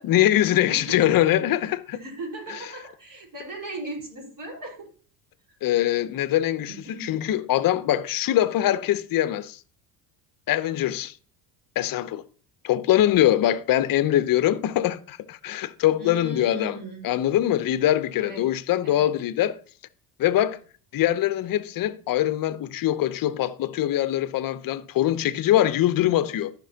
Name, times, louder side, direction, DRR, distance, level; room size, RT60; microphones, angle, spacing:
voice 1, 0.0-2.0 2.5-2.6 5.6-9.6 10.5-11.1 11.8-12.2 12.6-19.6 20.2-20.6 20.9-26.5, left 13 dB, 45° left, 0.8 m, -23 dB
voice 2, 0.7-1.3 1.9-4.9 6.7-7.2 16.0-17.1 18.2-18.4 18.8-19.1, right 2 dB, 40° right, 4.6 m, -37 dB
14.5 x 6.0 x 2.8 m
hypercardioid pair, 80°, 49 cm